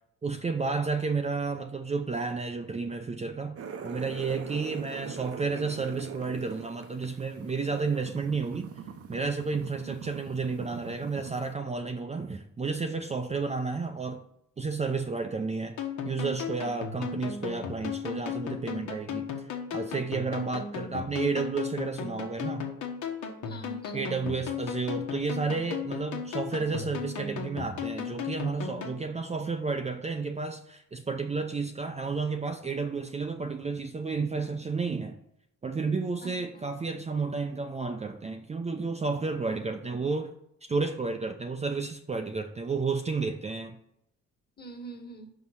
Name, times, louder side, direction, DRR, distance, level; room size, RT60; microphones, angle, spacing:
voice 1, 0.2-3.6 3.8-8.7 9.1-14.2 14.6-15.8 16.0-19.5 19.7-22.7 23.9-35.2 35.6-40.3 40.7-43.8, right 4 dB, 20° right, 5 dB, 0.6 m, -31 dB
sound 1, 3.6-11.5, right 7 dB, 50° right, 0.8 m, -42 dB
sound 2, 15.8-29.0, left 7 dB, 75° left, 1.3 m, -36 dB
voice 2, 23.5-24.6 36.2-36.3 44.6-45.3, right 3 dB, 35° left, 3 dB, 1.6 m, -44 dB
5.6 x 4.6 x 5.7 m, 0.76 s
cardioid pair, 90°, 30 cm